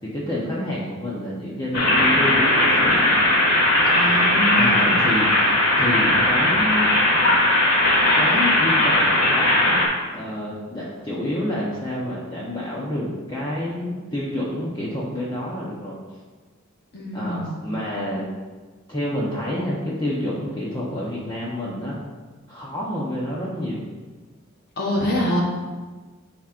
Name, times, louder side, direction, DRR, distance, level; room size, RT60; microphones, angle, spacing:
voice 1, 0.0-3.0 4.5-5.5 5.8-6.9 8.1-9.8 10.1-16.0 17.1-18.3 18.9-22.0 22.5-23.8, left 1 dB, 20° left, -6 dB, 0.9 m, -28 dB
sound 1, 1.7-9.9, left 1 dB, 80° left, 2.1 m, -18 dB
voice 2, 3.9-5.0 16.9-17.6 24.8-25.4, equal, 50° left, -3 dB, 1.1 m, -25 dB
11.0 x 4.4 x 2.5 m, 1.3 s
head